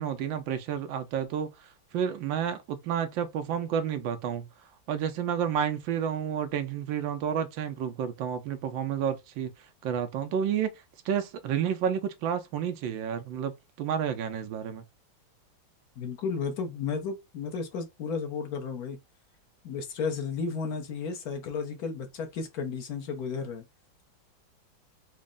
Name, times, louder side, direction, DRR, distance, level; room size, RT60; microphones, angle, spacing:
voice 1, 0.0-1.5 1.9-4.5 4.9-9.5 9.8-10.7 11.1-14.8, right 8 dB, 90° right, 1.4 m, -30 dB
voice 2, 16.0-19.0 19.6-23.6, left 5 dB, 60° left, 1.2 m, -33 dB
4.1 x 2.1 x 3.7 m
omnidirectional pair, 2.1 m